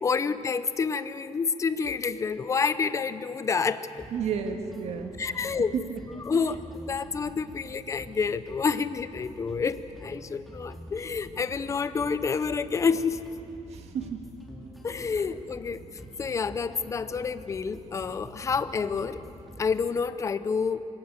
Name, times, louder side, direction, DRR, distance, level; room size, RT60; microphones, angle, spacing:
voice 1, 0.0-4.1 5.2-5.7 6.3-13.2 14.8-15.8 16.2-19.2 19.6-20.8, left 5 dB, 25° left, 13 dB, 0.6 m, -28 dB
sound 1, 4.0-20.0, equal, ahead, 2.8 m, -47 dB
voice 2, 4.1-5.5 5.7-6.0 13.7-14.2 15.1-15.3, right 6 dB, 65° right, 6 dB, 1.7 m, -32 dB
26.0 x 18.0 x 6.7 m, 2.7 s
cardioid pair, 175°, 12 cm